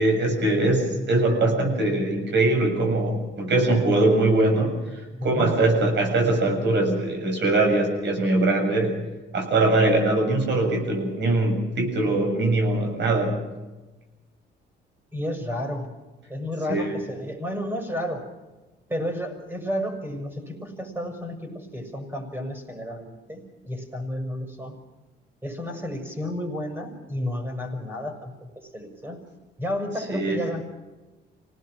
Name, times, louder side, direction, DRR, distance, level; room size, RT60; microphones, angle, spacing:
voice 1, 0.0-4.7 5.2-8.9 9.3-13.3 16.7-16.9 30.1-30.4, right 2 dB, 65° right, 3 dB, 7.6 m, -22 dB
voice 2, 5.1-5.8 15.1-15.9 16.3-18.3 18.9-24.8 25.4-29.2 29.6-30.6, left 1 dB, 10° right, 4 dB, 6.4 m, -32 dB
26.5 x 18.5 x 6.3 m, 1.2 s
cardioid pair, 90°, 20 cm